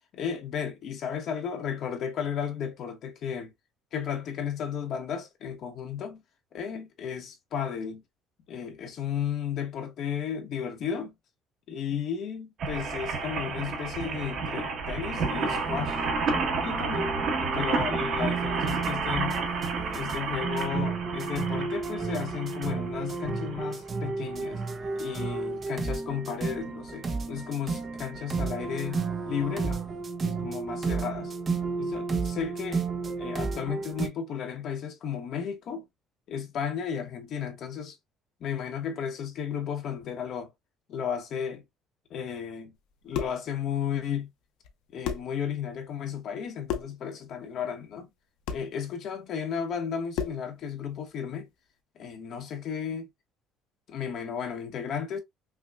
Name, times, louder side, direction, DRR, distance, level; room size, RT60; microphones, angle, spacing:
voice 1, 0.1-3.5 3.9-6.2 6.5-8.0 8.5-11.1 11.7-16.0 16.6-19.4 19.9-24.6 24.9-29.8 30.2-31.3 31.8-32.8 33.2-35.9 36.3-38.0 38.4-40.5 40.9-41.6 42.1-42.7 43.0-44.3 44.9-48.1 48.5-51.5 52.0-53.1 53.9-55.2, left 8 dB, 45° left, 0.9 m, -34 dB
sound 1, 12.6-23.7 24.3-24.4 24.6-24.7, right 4 dB, 45° right, 1.2 m, -31 dB
sound 2, 15.2-34.1, right 4 dB, 25° right, 0.6 m, -32 dB
sound 3, 42.9-43.5 44.6-44.7 45.0-45.4 46.7-47.0 48.5-48.7 50.1-50.5, left 8 dB, 90° left, 0.7 m, -33 dB
5.6 x 2.2 x 2.4 m
cardioid pair, 165°, 0 cm